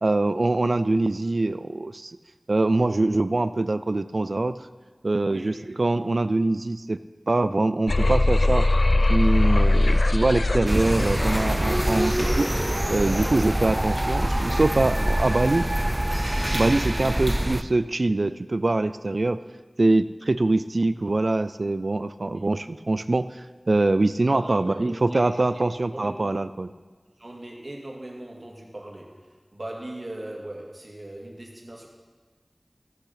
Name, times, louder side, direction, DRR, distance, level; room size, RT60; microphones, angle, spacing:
voice 1, 0.0-2.2 2.5-4.6 5.0-7.0 7.3-8.7 9.1-12.5 12.9-15.7 16.5-19.4 19.8-26.7, right 2 dB, 75° right, 13 dB, 0.4 m, -24 dB
voice 2, 5.2-5.7 12.1-12.4 16.9-17.1 22.3-22.4 24.3-25.6 25.9-26.3 27.2-31.9, right 1 dB, 55° right, -1 dB, 2.2 m, -40 dB
sound 1, 7.9-13.0, left 2 dB, 75° left, 0.4 m, -22 dB
sound 2, 10.7-17.6, right 1 dB, 20° right, 0.5 m, -25 dB
14.5 x 6.7 x 5.8 m, 1.5 s
wide cardioid pair, 40°, 0 cm